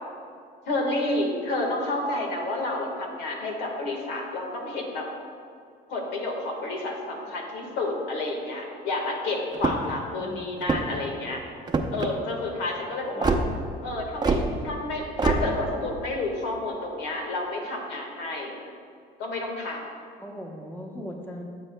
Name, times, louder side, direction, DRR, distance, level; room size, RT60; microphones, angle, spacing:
voice 1, 0.7-5.1 5.9-11.4 11.9-13.4 13.8-18.5 19.2-19.9, left 2 dB, 85° left, 1 dB, 1.6 m, -30 dB
sound 1, 9.5-10.0 10.6-11.0 11.7-12.1 13.2-13.4 14.2-14.4 15.2-15.4, right 4 dB, 25° right, 0.6 m, -24 dB
voice 2, 9.6-10.5 13.1-13.4 20.2-21.6, equal, 10° left, 1 dB, 1.0 m, -40 dB
14.5 x 7.1 x 2.2 m, 2.3 s
cardioid pair, 110°, 17 cm